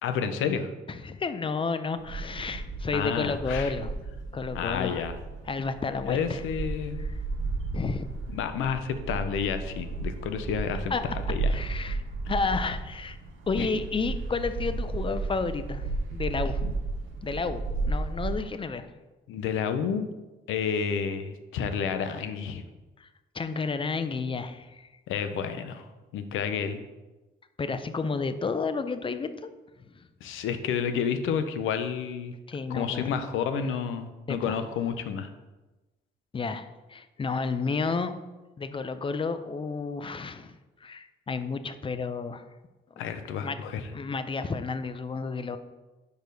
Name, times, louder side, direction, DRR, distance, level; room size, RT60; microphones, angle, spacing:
voice 1, 0.0-0.7 2.9-3.7 4.5-5.2 6.0-7.1 8.3-11.5 13.6-13.7 16.6-16.7 19.3-20.1 20.5-22.6 25.1-25.9 26.1-26.8 30.2-32.3 32.7-35.3 43.0-43.9, left 7 dB, 85° left, 9 dB, 0.6 m, -30 dB
voice 2, 0.9-3.9 4.3-5.0 5.5-6.4 7.0-7.1 7.7-8.1 10.9-11.0 11.5-12.0 12.3-13.2 13.5-16.6 17.2-18.9 23.0-23.1 23.3-24.9 27.6-29.5 29.9-30.1 32.5-33.1 34.3-34.6 36.3-38.1 38.6-42.4 43.3-43.6 43.9-45.6, left 4 dB, 25° left, 11 dB, 0.5 m, -31 dB
sound 1, 2.0-18.4, right 3 dB, 80° right, 1.1 m, -34 dB
4.8 x 4.6 x 5.2 m, 1.1 s
cardioid pair, 90°, 20 cm